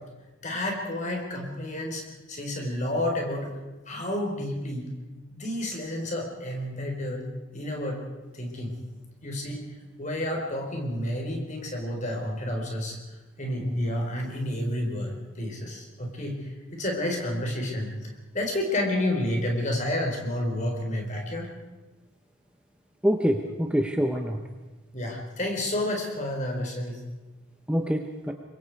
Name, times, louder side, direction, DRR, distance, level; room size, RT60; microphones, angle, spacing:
voice 1, 0.4-2.0 2.3-3.5 3.9-4.9 5.3-7.2 7.5-8.0 8.3-8.7 9.2-9.6 10.0-13.0 13.4-16.4 16.7-21.5 24.9-27.0, left 1 dB, 35° left, 1 dB, 4.2 m, -30 dB
voice 2, 23.0-24.4 27.7-28.3, equal, 5° right, 4 dB, 0.9 m, -25 dB
25.0 x 23.0 x 4.7 m, 1.1 s
head